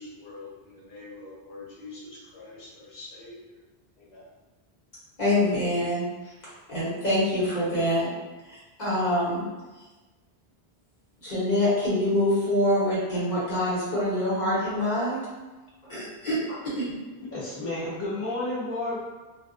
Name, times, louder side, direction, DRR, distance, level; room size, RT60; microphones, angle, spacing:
voice 1, 0.0-3.5 4.0-4.3, left 3 dB, 80° left, -7 dB, 1.1 m, -45 dB
voice 2, 5.2-6.0 6.7-8.1 8.5-9.4 11.2-15.2 15.9-16.4 16.7-17.0, left 1 dB, 45° left, -9 dB, 1.1 m, -25 dB
voice 3, 17.3-19.0, left 2 dB, 20° left, -8 dB, 0.5 m, -31 dB
2.3 x 2.3 x 2.4 m, 1.2 s
omnidirectional pair, 1.1 m